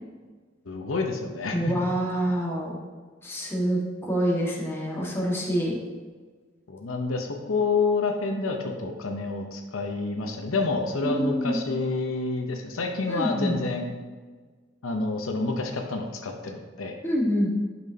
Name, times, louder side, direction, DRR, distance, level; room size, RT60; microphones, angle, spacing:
voice 1, 0.7-1.9 6.7-13.9 14.8-17.0, left 3 dB, 80° left, 3 dB, 0.8 m, -28 dB
voice 2, 1.5-2.8 3.2-5.8 11.0-11.6 13.1-13.6 17.0-17.5, equal, 10° left, -4 dB, 1.6 m, -26 dB
10.5 x 6.0 x 2.8 m, 1.4 s
head